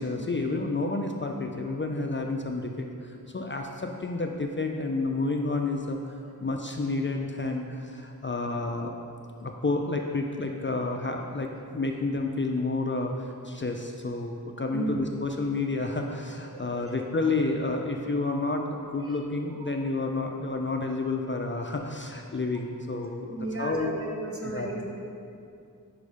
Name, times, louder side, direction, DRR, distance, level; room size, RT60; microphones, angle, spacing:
voice 1, 0.0-8.9 9.4-23.9 24.4-24.7, left 3 dB, 35° left, 2 dB, 0.4 m, -30 dB
voice 2, 16.5-16.9 19.0-19.2 19.6-19.7 23.3-24.8, right 2 dB, 40° right, -2 dB, 1.1 m, -35 dB
5.3 x 5.1 x 4.9 m, 2.5 s
wide cardioid pair, 45°, 36 cm